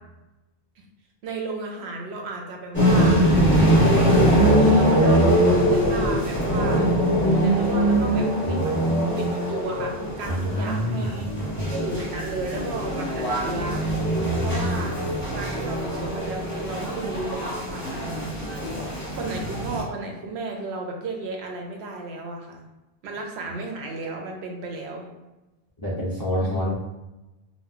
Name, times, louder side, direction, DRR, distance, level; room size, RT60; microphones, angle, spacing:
voice 1, 1.2-3.2 3.8-6.9 7.3-11.3 11.7-13.8 14.4-18.7 19.1-22.6 23.0-25.1 26.4-26.7, right 3 dB, 85° right, 1 dB, 0.8 m, -34 dB
sound 1, 2.7-19.8, equal, 10° left, 0.9 m, -22 dB
voice 2, 3.6-4.0 8.4-8.9 10.3-11.7 14.2-14.9 25.8-26.7, equal, 35° left, -7 dB, 0.3 m, -28 dB
2.2 x 2.1 x 3.5 m, 1.0 s
omnidirectional pair, 1.1 m